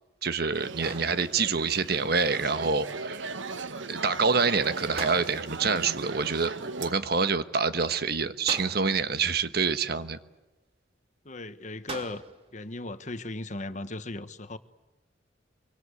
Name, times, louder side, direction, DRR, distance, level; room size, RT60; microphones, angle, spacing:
voice 1, 0.2-3.4 3.9-10.2, right 5 dB, 55° right, 1.2 m, -27 dB
sound 1, 0.5-6.9, right 4 dB, 85° right, 1.3 m, -38 dB
sound 2, 0.8-1.7 5.0-5.8 8.5-9.2 11.9-12.5, right 2 dB, 30° right, 2.4 m, -41 dB
voice 2, 11.2-12.2 12.5-14.6, left 2 dB, 40° left, 1.3 m, -37 dB
25.0 x 24.5 x 8.3 m
head